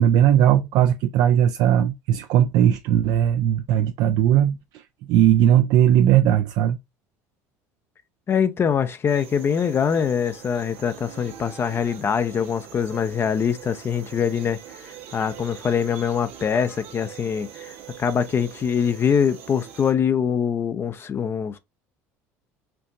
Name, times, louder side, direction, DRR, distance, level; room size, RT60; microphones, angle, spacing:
voice 1, 0.0-6.8, right 10 dB, 65° right, 0.4 m, -18 dB
voice 2, 8.3-21.6, left 7 dB, 35° left, 0.5 m, -24 dB
sound 1, 9.1-19.9, right 9 dB, 80° right, 1.2 m, -43 dB
4.5 x 2.6 x 2.5 m
supercardioid pair, 90°, 7 cm